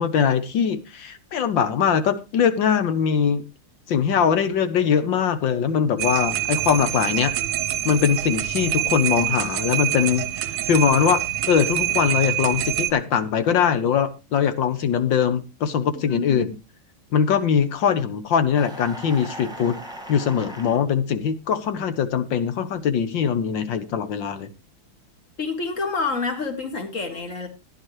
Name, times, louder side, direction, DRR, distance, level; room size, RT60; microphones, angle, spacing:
voice 1, 0.0-3.5 3.9-7.3 7.8-11.2 11.5-16.5 17.1-19.8 20.1-24.5, left 7 dB, 65° left, 11 dB, 1.7 m, -22 dB
sound 1, 6.0-12.9, right 13 dB, 65° right, 1.3 m, -26 dB
voice 2, 16.0-16.4 25.4-27.5, left 4 dB, 35° left, 6 dB, 2.4 m, -28 dB
sound 2, 18.5-20.8, right 1 dB, ahead, 1.6 m, -38 dB
15.5 x 10.5 x 3.2 m, 0.27 s
omnidirectional pair, 2.3 m